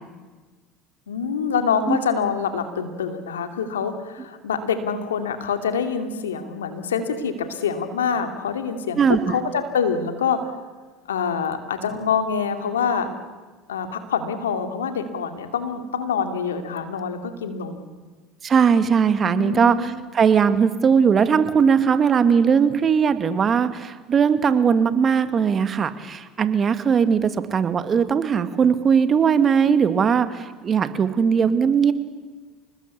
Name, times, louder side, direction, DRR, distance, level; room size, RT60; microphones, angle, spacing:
voice 1, 1.1-9.0 9.3-10.4 11.1-13.1 13.7-17.9 19.2-19.9, left 6 dB, 90° left, 7 dB, 2.5 m, -26 dB
voice 2, 9.0-9.4 18.4-31.9, right 6 dB, 35° right, 10 dB, 2.2 m, -19 dB
28.5 x 20.0 x 8.5 m, 1.4 s
hypercardioid pair, 75°, 0 cm